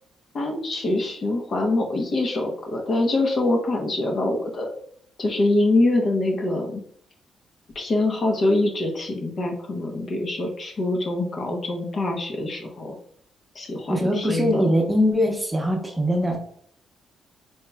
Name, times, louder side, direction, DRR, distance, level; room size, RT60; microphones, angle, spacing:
voice 1, 0.3-4.7 5.2-6.8 7.7-13.0 13.5-14.7, left 2 dB, 45° left, 2 dB, 0.9 m, -24 dB
voice 2, 13.9-16.4, equal, 10° right, 1 dB, 0.9 m, -22 dB
4.5 x 3.0 x 2.3 m, 0.62 s
cardioid pair, 90°, 0 cm